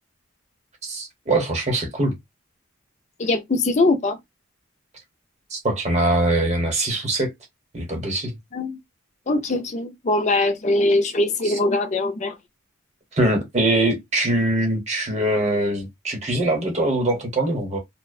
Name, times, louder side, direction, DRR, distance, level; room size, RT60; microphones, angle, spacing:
voice 1, 0.8-2.2 5.5-7.3 7.7-8.3 11.4-11.6 13.1-17.8, right 1 dB, 30° right, 0.9 m, -22 dB
voice 2, 3.2-4.2 8.5-8.8 9.3-12.4, left 2 dB, 35° left, 0.4 m, -21 dB
2.4 x 2.0 x 2.5 m
head